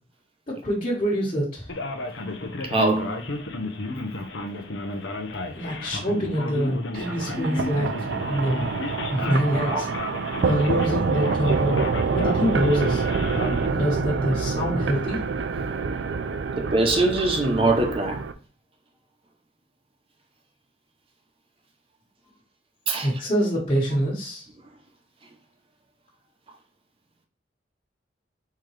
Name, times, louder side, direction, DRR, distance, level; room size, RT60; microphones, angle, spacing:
voice 1, 0.5-1.7 5.5-8.6 9.1-9.9 10.4-13.0 13.7-15.2 23.0-24.5, equal, 35° left, 1.4 m, -25 dB
Male speech man speaking, 1.7-13.7, left 2 dB, 85° left, 0.8 m, -33 dB
voice 2, 2.7-3.2 9.5-9.8 16.6-18.2 22.9-23.1, right 2 dB, 30° right, 0.6 m, -22 dB
sound 1, 6.9-18.3, right 5 dB, 70° right, 0.4 m, -27 dB
4.4 x 3.7 x 3.2 m
head